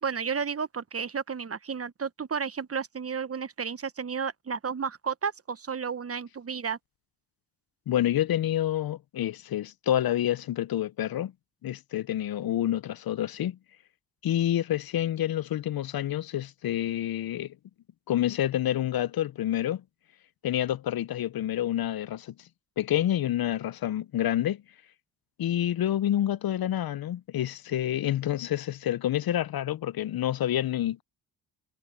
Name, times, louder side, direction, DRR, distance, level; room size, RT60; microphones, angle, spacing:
voice 1, 0.0-6.8, right 6 dB, 35° right, 1.2 m, -32 dB
voice 2, 7.9-11.3 11.6-13.6 14.2-17.5 18.1-19.8 20.4-22.3 22.8-24.6 25.4-31.0, left 12 dB, 55° left, 0.9 m, -28 dB
hypercardioid pair, 50°, 43 cm